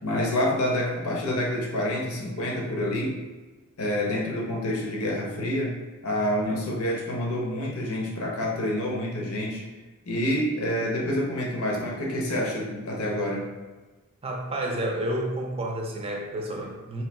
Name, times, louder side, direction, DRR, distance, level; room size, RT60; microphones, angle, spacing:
voice 1, 0.0-3.1 3.8-5.7 6.0-9.6 10.0-13.4, left 1 dB, 75° left, -2 dB, 0.8 m, -27 dB
voice 2, 14.2-17.0, right 1 dB, 25° right, 1 dB, 0.5 m, -30 dB
3.1 x 2.8 x 4.3 m, 1.3 s
head